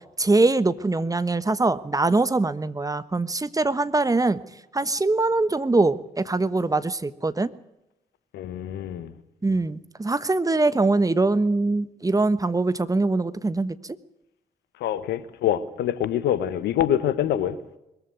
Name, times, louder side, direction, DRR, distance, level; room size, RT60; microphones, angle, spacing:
voice 1, 0.2-4.4 4.7-7.5 9.4-14.0, right 3 dB, 20° right, 1.2 m, -23 dB
voice 2, 8.3-9.1 14.8-17.6, left 10 dB, 65° left, 1.4 m, -25 dB
22.0 x 14.5 x 9.4 m
figure-of-eight pair, 40°, 19 cm